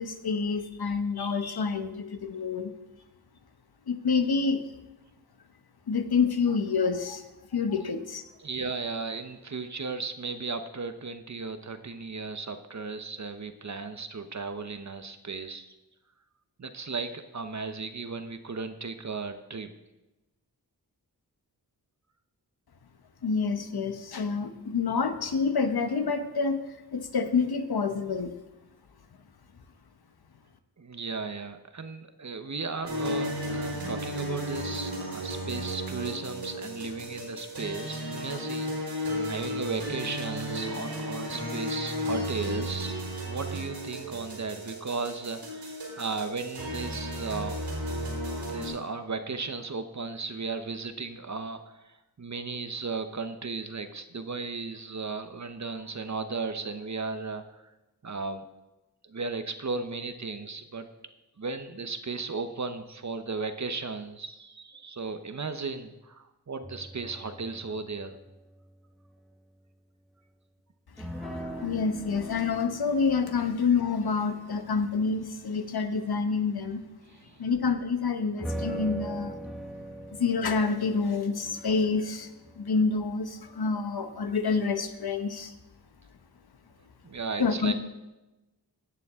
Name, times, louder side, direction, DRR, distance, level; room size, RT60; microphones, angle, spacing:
voice 1, 0.0-2.7 3.9-4.6 5.9-7.2 7.5-8.2 23.2-26.6 26.9-28.3 71.0-76.8 77.4-79.3 80.2-82.3 82.6-85.5 87.4-87.7, left 5 dB, 60° left, 8 dB, 1.1 m, -28 dB
voice 2, 8.4-15.7 16.6-19.7 30.8-47.6 48.5-57.6 58.0-58.5 59.0-60.9 61.4-68.2 77.1-77.4 87.0-87.7, right 4 dB, 40° right, 9 dB, 1.0 m, -35 dB
sound 1, 32.8-48.7, equal, 75° right, 4.2 m, -34 dB
sound 2, 66.6-69.1 71.0-75.5 78.4-83.8, right 1 dB, ahead, 1.3 m, -41 dB
17.5 x 6.9 x 3.7 m, 1.0 s
cardioid pair, 45°, 41 cm